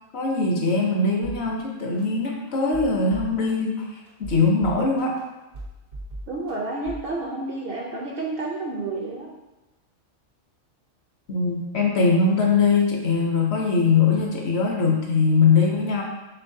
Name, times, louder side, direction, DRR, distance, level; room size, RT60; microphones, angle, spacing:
voice 1, 0.1-5.2 11.3-16.0, left 4 dB, 60° left, 0 dB, 0.8 m, -21 dB
sound 1, 1.2-1.4 2.0-2.1 2.6-3.5 4.1-5.2 5.5-6.5 6.8-7.1, right 1 dB, 90° right, 1.3 m, -37 dB
voice 2, 6.3-9.3, right 2 dB, 60° right, -2 dB, 0.6 m, -30 dB
4.5 x 3.6 x 2.6 m, 1.0 s
omnidirectional pair, 1.3 m